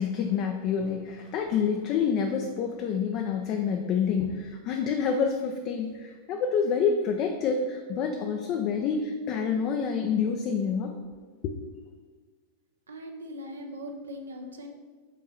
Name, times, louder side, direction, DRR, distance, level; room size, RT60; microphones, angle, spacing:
voice 1, 0.0-11.0 11.4-11.5, left 6 dB, 40° left, 3 dB, 0.5 m, -27 dB
voice 2, 12.9-14.7, equal, 70° right, 4 dB, 0.8 m, -40 dB
5.4 x 3.7 x 5.5 m, 1.5 s
figure-of-eight pair, 90°, 0 cm